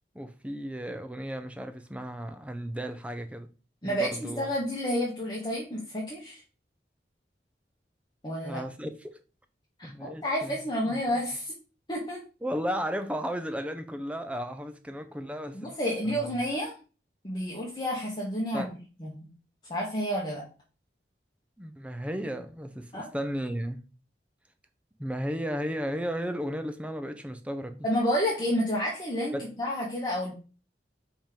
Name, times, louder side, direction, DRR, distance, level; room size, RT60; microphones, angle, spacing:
voice 1, 0.1-3.5 3.8-4.5 8.4-9.2 9.8-10.6 10.9-11.0 12.4-15.7 16.0-16.3 18.5-18.7 21.6-23.8 25.0-27.9 29.3-29.5, equal, 5° right, 0.6 m, -34 dB
voice 2, 3.8-6.4 8.2-8.6 9.8-11.5 11.9-12.2 15.5-16.7 17.2-18.7 19.0-19.3 19.7-20.4 22.9-23.1 27.8-30.3, equal, 25° left, 1.3 m, -30 dB
5.1 x 3.7 x 5.1 m
head